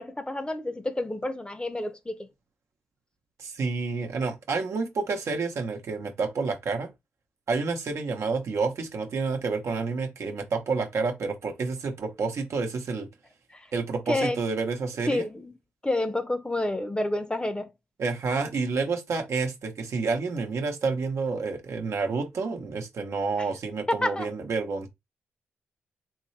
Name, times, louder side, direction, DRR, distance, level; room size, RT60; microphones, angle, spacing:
voice 1, 0.0-2.3 13.5-13.7 14.1-14.4 15.1-15.5 15.8-17.7 23.4-23.5 23.9-24.3, left 1 dB, 20° left, 0.7 m, -29 dB
voice 2, 3.4-6.9 7.5-13.1 13.7-15.3 18.0-24.9, right 4 dB, 65° right, 0.9 m, -29 dB
3.6 x 2.7 x 3.2 m
supercardioid pair, 50°, 5 cm